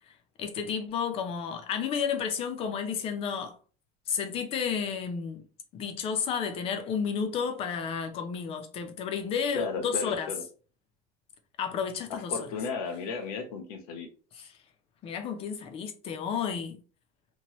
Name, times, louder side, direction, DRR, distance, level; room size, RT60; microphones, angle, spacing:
voice 1, 0.4-3.6 4.1-5.4 5.7-10.3 11.6-12.4 14.4-14.5 15.0-16.8, left 6 dB, 30° left, 0.5 m, -31 dB
voice 2, 9.5-10.4 12.1-14.1, left 4 dB, 80° left, 0.9 m, -34 dB
2.9 x 2.1 x 2.9 m
cardioid pair, 165°, 19 cm